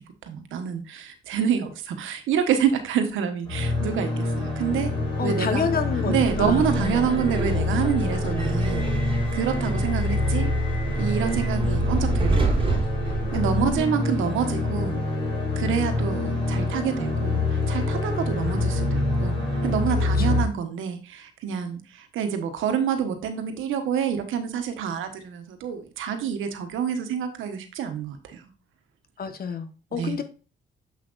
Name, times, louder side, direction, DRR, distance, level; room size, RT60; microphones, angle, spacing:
voice 1, 0.2-4.9 5.2-5.7 6.1-8.9 9.3-10.5 11.0-12.8 13.1-15.0 15.6-28.4 29.9-30.2, right 8 dB, 85° right, 7 dB, 1.3 m, -27 dB
sound 1, 3.4-20.4, left 2 dB, 25° left, 3.9 m, -26 dB
voice 2, 5.2-7.1 13.4-14.0 19.9-20.4 29.2-30.2, left 6 dB, 50° left, 9 dB, 1.1 m, -30 dB
Subway metro underground, 6.2-13.8, right 3 dB, 25° right, 3.6 m, -29 dB
7.4 x 5.9 x 2.5 m, 0.35 s
cardioid pair, 90°, 20 cm